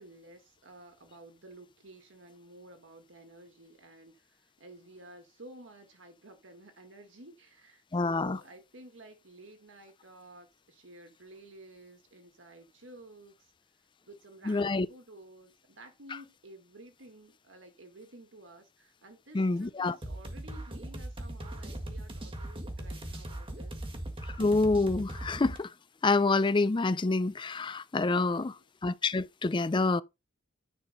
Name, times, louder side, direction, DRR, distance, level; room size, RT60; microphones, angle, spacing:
voice 1, 0.0-13.5 14.1-23.8 28.2-28.6, right 1 dB, 80° right, 1.6 m, -53 dB
voice 2, 7.9-8.4 14.5-14.9 19.3-20.0 24.4-25.7 26.0-28.5 28.8-30.0, left 3 dB, 25° left, 0.4 m, -27 dB
sound 1, 20.0-25.6, right 1 dB, 30° right, 1.7 m, -39 dB
9.9 x 4.0 x 5.2 m
head